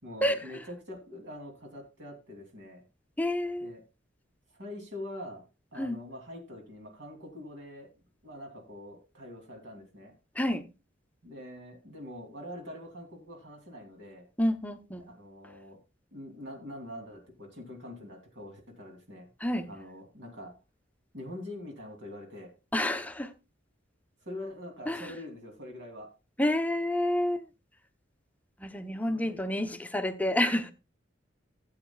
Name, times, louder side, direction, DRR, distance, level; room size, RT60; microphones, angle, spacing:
voice 1, 0.0-2.8 3.6-3.8 4.5-5.4 5.7-7.9 8.2-10.1 11.2-14.3 15.0-15.8 16.1-19.3 19.7-20.5 21.1-22.5 24.2-26.1 29.1-29.4, left 1 dB, 65° right, 2.9 m, -44 dB
voice 2, 3.2-3.7 5.8-6.0 10.4-10.7 14.4-15.1 19.4-19.7 22.7-23.3 24.9-25.1 26.4-27.5 28.6-30.7, left 1 dB, 10° left, 0.7 m, -29 dB
17.0 x 8.1 x 2.3 m
head